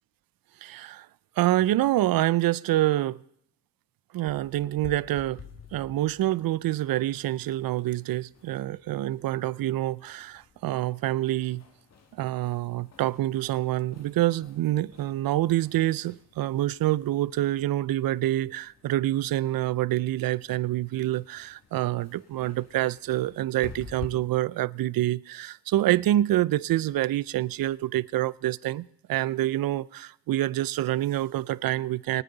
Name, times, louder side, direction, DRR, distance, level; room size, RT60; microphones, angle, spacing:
voice 1, 0.6-1.1 1.4-3.2 4.1-5.4 5.7-11.6 12.2-32.2, right 14 dB, 70° right, 0.5 m, -27 dB
sound 1, 4.3-24.1, left 5 dB, 45° left, 1.9 m, -51 dB
24.5 x 9.1 x 3.9 m
cardioid pair, 120°, 37 cm